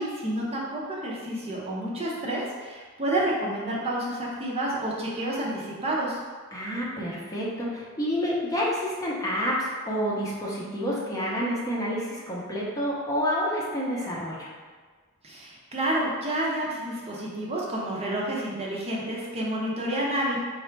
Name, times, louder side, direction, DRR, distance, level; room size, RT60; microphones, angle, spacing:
voice 1, 0.0-6.2 15.2-20.4, right 1 dB, 25° right, -4 dB, 0.6 m, -29 dB
voice 2, 6.5-14.5, equal, 15° left, -5 dB, 0.7 m, -29 dB
4.1 x 2.4 x 4.4 m, 1.5 s
head